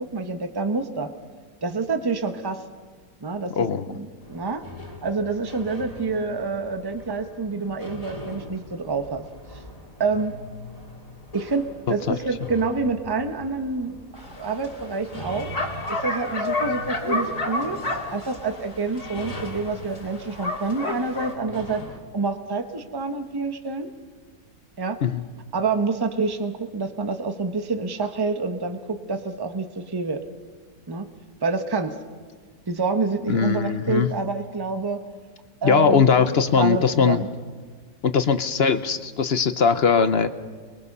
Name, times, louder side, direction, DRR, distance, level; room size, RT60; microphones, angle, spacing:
voice 1, 0.1-1.1 1.6-2.6 3.2-3.5 3.9-4.6 5.0-9.2 9.5-9.6 10.0-10.3 11.3-14.0 14.3-15.5 15.9-17.8 18.1-21.8 22.1-23.9 24.8-25.0 25.5-30.2 30.9-31.1 31.4-32.0 32.7-35.0 35.6-36.3 36.5-37.3, right 4 dB, 15° right, 6 dB, 1.0 m, -27 dB
voice 2, 3.6-3.9 12.1-12.2 25.0-25.2 33.3-34.1 35.6-37.2 38.0-40.3, left 6 dB, 50° left, 11 dB, 0.9 m, -20 dB
sound 1, 4.2-22.0, left 1 dB, 25° left, 2.1 m, -42 dB
Bark, 14.2-21.3, left 2 dB, 75° left, 3.1 m, -31 dB
28.5 x 22.0 x 5.5 m, 1.5 s
omnidirectional pair, 1.6 m